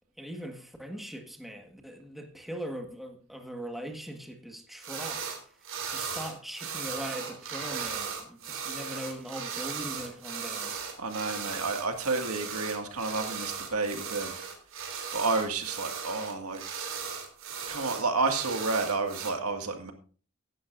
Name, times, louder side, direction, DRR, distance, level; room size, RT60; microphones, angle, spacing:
voice 1, 0.2-5.3 5.9-10.8, equal, ahead, 4 dB, 1.6 m, -40 dB
sound 1, 4.8-5.4 5.6-19.3, right 6 dB, 65° right, 3.3 m, -37 dB
voice 2, 11.0-14.3 15.1-16.6 17.7-19.9, right 3 dB, 80° right, 5 dB, 2.0 m, -30 dB
16.5 x 12.0 x 2.6 m, 0.38 s
head